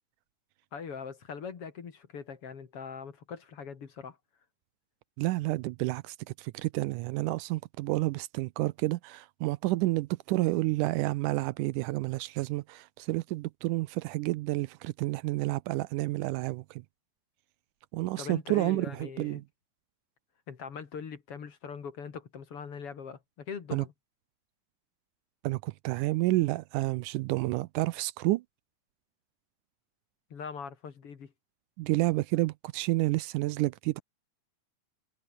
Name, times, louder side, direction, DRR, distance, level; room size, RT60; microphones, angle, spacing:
voice 1, 0.7-4.2 18.2-19.4 20.5-23.9 30.3-31.3, left 6 dB, 45° left, 2.8 m, -41 dB
voice 2, 5.2-16.8 17.9-19.4 23.7-23.9 25.4-28.4 31.8-34.0, right 19 dB, 80° right, 2.0 m, -30 dB
omnidirectional pair, 3.8 m